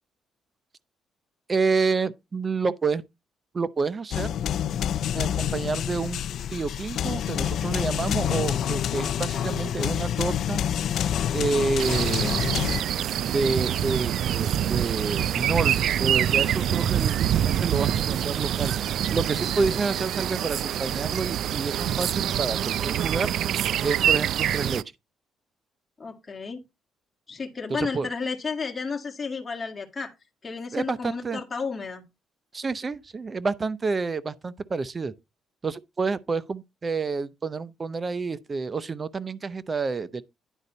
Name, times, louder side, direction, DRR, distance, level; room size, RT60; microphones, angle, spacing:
voice 1, 1.5-3.0 3.5-4.3 5.1-6.2 6.5-10.6 11.3-12.5 13.3-18.7 19.1-23.3 23.8-24.8 27.8-28.1 30.7-31.4 32.5-35.1 35.6-40.2, right 4 dB, 35° right, 0.7 m, -29 dB
sound 1, 4.1-12.8, left 9 dB, 70° left, 0.4 m, -27 dB
sound 2, 11.8-24.8, right 10 dB, 70° right, 0.4 m, -25 dB
voice 2, 26.0-26.6 27.3-30.1 30.4-32.0, left 4 dB, 30° left, 1.9 m, -32 dB
10.0 x 3.9 x 5.5 m
cardioid pair, 90°, 0 cm